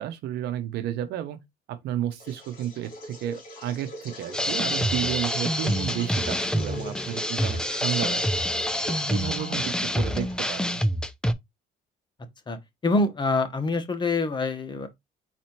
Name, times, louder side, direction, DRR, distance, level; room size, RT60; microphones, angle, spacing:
voice 1, 0.0-1.4 1.7-8.5 8.9-10.8, right 11 dB, 75° right, 0.8 m, -32 dB
sound 1, 2.1-10.7, left 1 dB, 55° left, 2.4 m, -40 dB
sound 2, 4.3-11.3, equal, 5° left, 0.4 m, -27 dB
voice 2, 12.8-14.9, left 3 dB, 25° left, 1.0 m, -25 dB
4.3 x 2.8 x 4.3 m
cardioid pair, 110°, 17 cm